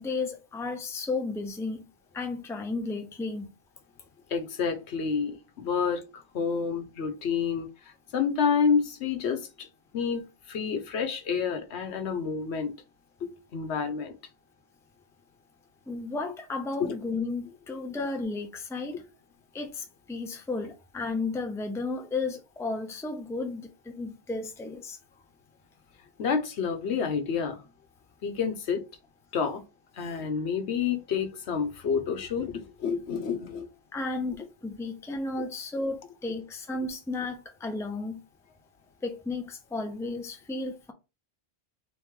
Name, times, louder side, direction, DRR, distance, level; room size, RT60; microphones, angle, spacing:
voice 1, 0.0-1.9 2.1-3.5 15.9-19.0 19.5-25.0 30.0-30.1 33.9-38.2 39.0-40.9, left 3 dB, 5° left, 0.5 m, -33 dB
voice 2, 4.3-7.7 8.1-9.7 9.9-12.7 13.2-14.1 16.8-17.0 26.2-27.6 28.2-28.8 29.3-29.6 30.0-33.7, left 6 dB, 75° left, 1.1 m, -29 dB
3.6 x 3.2 x 3.6 m
omnidirectional pair, 1.1 m